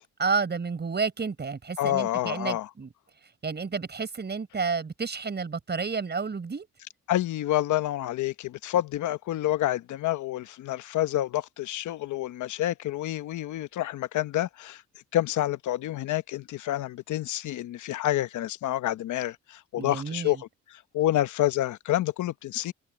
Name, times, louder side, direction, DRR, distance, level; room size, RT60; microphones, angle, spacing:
voice 1, 0.2-2.9 3.4-6.7 19.8-20.4, right 5 dB, 35° right, 6.8 m, -30 dB
voice 2, 1.8-2.7 7.1-14.8 15.1-20.4 20.9-22.7, left 13 dB, 75° left, 1.0 m, -28 dB
cardioid pair, 90°, 30 cm